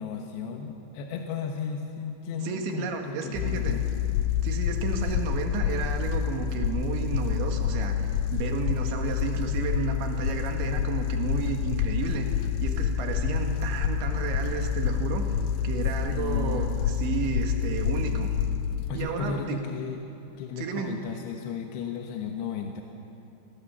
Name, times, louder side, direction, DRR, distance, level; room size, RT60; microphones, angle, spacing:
voice 1, 0.0-3.8 16.1-16.6 18.9-20.0 20.4-22.8, left 6 dB, 75° left, 2 dB, 3.2 m, -35 dB
voice 2, 2.4-3.8 4.4-12.3 12.6-15.2 15.6-18.4 18.9-19.6 20.6-20.9, right 5 dB, 80° right, 3 dB, 4.1 m, -32 dB
sound 1, 3.4-18.9, left 9 dB, 90° left, 3.2 m, -28 dB
28.5 x 18.5 x 7.1 m, 2.7 s
omnidirectional pair, 5.2 m